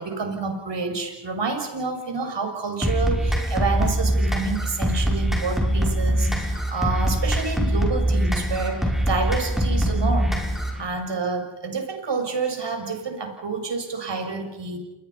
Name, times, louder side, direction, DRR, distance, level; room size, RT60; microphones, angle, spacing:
voice 1, 0.0-14.8, right 4 dB, 65° right, 4 dB, 6.5 m, -28 dB
sound 1, 2.8-10.8, equal, ahead, 5.7 m, -23 dB
29.5 x 21.0 x 5.7 m, 1.1 s
cardioid pair, 55°, 47 cm